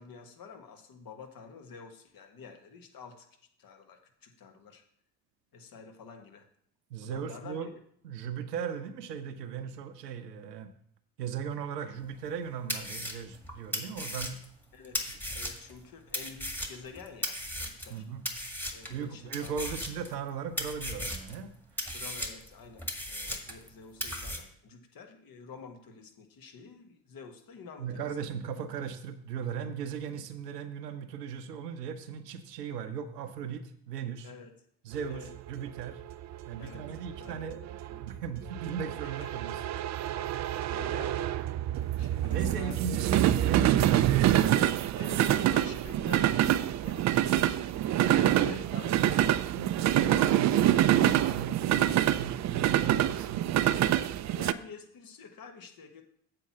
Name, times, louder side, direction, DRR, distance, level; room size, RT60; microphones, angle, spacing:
voice 1, 0.0-3.3 3.6-4.8 5.5-6.5 7.0-7.7 14.7-18.1 18.7-19.6 21.9-28.2 34.2-34.5 35.1-35.3 36.6-37.5 39.0-39.8 40.2-41.3 42.0-42.8 44.9-47.3 47.6-49.0 54.2-56.0, left 5 dB, 45° left, 5 dB, 1.5 m, -49 dB
voice 2, 6.9-7.7 8.0-10.7 11.2-14.4 17.9-18.2 18.9-21.5 27.8-34.3 34.8-36.0 36.5-39.6 42.3-44.6 47.9-53.5, right 7 dB, 85° right, 9 dB, 0.8 m, -38 dB
sound 1, 12.2-12.3 12.7-15.8 16.1-18.0 18.3-19.0 19.3-20.3 20.6-21.4 21.8-23.7 24.0-24.4, equal, 5° left, 1.7 m, -36 dB
sound 2, 35.0-54.5, right 12 dB, 40° right, 0.5 m, -26 dB
7.8 x 4.6 x 7.2 m, 0.66 s
hypercardioid pair, 50°, 47 cm